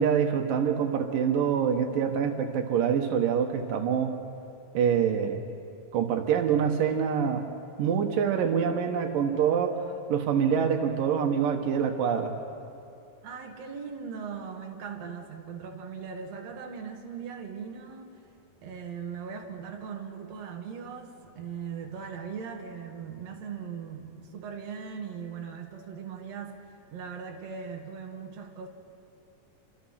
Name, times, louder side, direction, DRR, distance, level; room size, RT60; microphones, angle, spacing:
voice 1, 0.0-4.2 4.7-5.4 5.9-7.5 7.8-9.8 10.1-12.3, right 7 dB, 85° right, 4 dB, 3.0 m, -25 dB
voice 2, 13.2-18.2 18.6-28.7, right 6 dB, 55° right, 2 dB, 2.9 m, -39 dB
29.0 x 26.0 x 5.8 m, 2.7 s
omnidirectional pair, 3.8 m